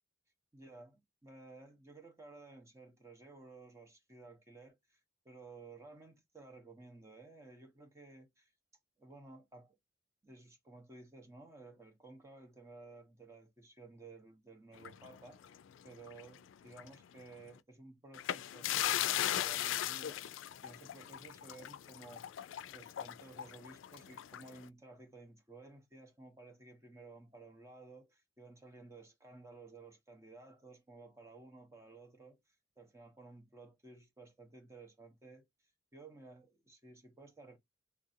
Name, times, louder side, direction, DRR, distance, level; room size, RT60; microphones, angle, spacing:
voice 1, 0.5-5.0 5.2-8.5 9.0-9.8 10.2-15.6 15.8-22.4 22.7-35.5 35.9-37.6, right 3 dB, 15° right, 0.7 m, -55 dB
sound 1, 14.8-16.4 16.7-16.9 18.1-24.6, left 12 dB, 90° left, 0.3 m, -38 dB
3.3 x 2.5 x 2.5 m
head